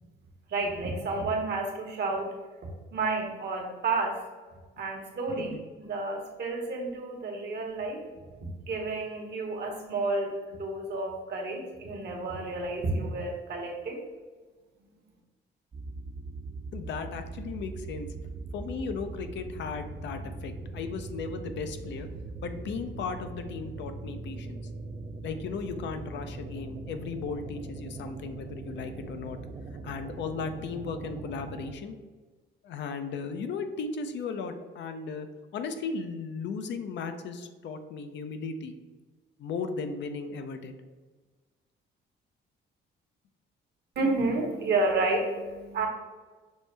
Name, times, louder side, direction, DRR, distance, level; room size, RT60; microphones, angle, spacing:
voice 1, 0.5-2.4 2.9-4.2 4.8-8.0 8.4-14.0 44.0-45.9, right 3 dB, 55° right, 1 dB, 1.0 m, -30 dB
voice 2, 5.3-5.6 16.7-18.1 18.5-22.1 22.4-24.6 25.2-29.4 29.8-32.0 32.6-35.3 35.5-38.8 39.4-40.7, left 5 dB, 65° left, 8 dB, 0.5 m, -36 dB
sound 1, 15.7-31.7, right 3 dB, 30° right, 0.4 m, -41 dB
6.1 x 2.1 x 3.2 m, 1.3 s
cardioid pair, 90°, 20 cm